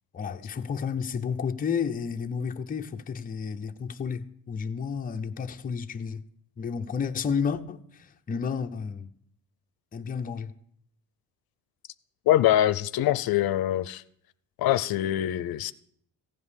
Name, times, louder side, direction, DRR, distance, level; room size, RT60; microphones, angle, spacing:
voice 1, 0.1-6.2 6.6-9.1 9.9-10.5, left 6 dB, 25° left, 0.6 m, -31 dB
voice 2, 12.3-14.0 14.6-15.7, left 13 dB, 75° left, 0.6 m, -24 dB
15.5 x 5.3 x 9.8 m
cardioid pair, 155°, 37 cm